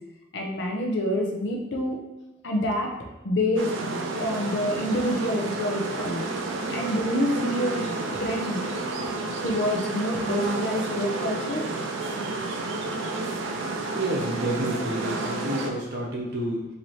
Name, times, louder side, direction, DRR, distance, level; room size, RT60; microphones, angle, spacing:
voice 1, 0.3-2.0 2.4-2.9 3.2-3.7 4.2-6.2 6.7-7.9 8.2-8.6 9.4-11.7, left 1 dB, 60° left, 1 dB, 0.6 m, -27 dB
sound 1, 3.6-15.7, right 3 dB, 70° right, 0.5 m, -30 dB
voice 2, 13.8-16.7, right 1 dB, 55° right, -2 dB, 0.8 m, -29 dB
4.1 x 2.8 x 3.1 m, 0.98 s
head